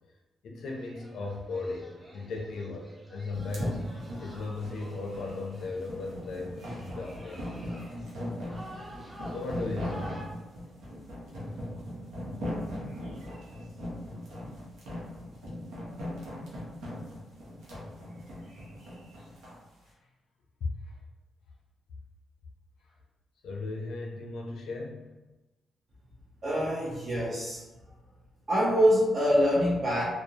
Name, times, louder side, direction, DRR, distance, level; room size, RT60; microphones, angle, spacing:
voice 1, 0.4-3.8 4.2-7.7 9.2-10.3 11.5-11.7 20.6-21.0 23.4-25.1, left 3 dB, 80° left, 0 dB, 0.4 m, -37 dB
sound 1, 0.6-10.3, equal, 10° right, 0.6 m, -50 dB
sound 2, 3.3-19.6, equal, 90° right, 0.7 m, -39 dB
voice 2, 26.4-27.6 28.5-30.0, equal, 50° right, -8 dB, 0.7 m, -25 dB
2.4 x 2.0 x 2.7 m, 1.1 s
cardioid pair, 80°, 0 cm